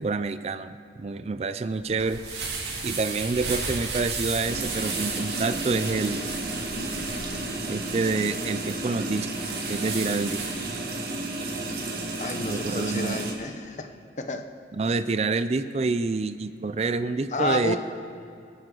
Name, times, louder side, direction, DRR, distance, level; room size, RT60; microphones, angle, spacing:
voice 1, 0.0-2.2 2.8-6.4 7.7-9.3 9.7-10.4 12.4-13.3 14.8-17.8, right 3 dB, 35° right, 12 dB, 0.4 m, -27 dB
sound 1, 1.6-10.7, right 4 dB, 70° right, 2.6 m, -34 dB
sound 2, 4.5-13.3, right 2 dB, 55° right, 1.8 m, -32 dB
voice 2, 12.2-13.9 14.2-14.4 17.3-17.8, left 2 dB, 40° left, 7 dB, 0.8 m, -30 dB
27.0 x 9.2 x 3.9 m, 2.4 s
head